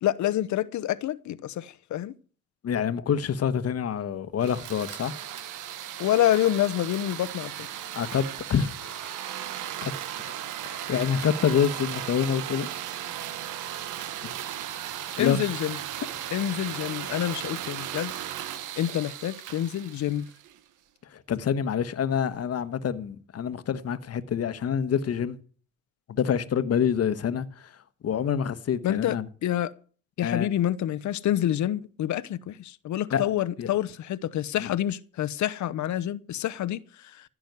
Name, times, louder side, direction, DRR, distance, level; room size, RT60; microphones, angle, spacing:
voice 1, 0.0-2.1 6.0-7.5 15.2-15.7 16.3-18.1 18.8-20.3 28.8-29.7 30.2-36.8, left 12 dB, 70° left, 0.9 m, -27 dB
voice 2, 2.6-5.1 7.9-9.1 9.8-9.9 10.6-12.7 14.2-14.3 15.2-15.5 16.2-16.3 21.1-25.4 26.1-27.7 28.0-29.2 30.2-30.5 33.1-33.3 33.6-33.7 34.6-34.7, left 8 dB, 55° left, 1.2 m, -27 dB
sound 1, 4.4-20.6, right 11 dB, 85° right, 1.4 m, -36 dB
15.5 x 6.3 x 9.4 m
cardioid pair, 90°, 30 cm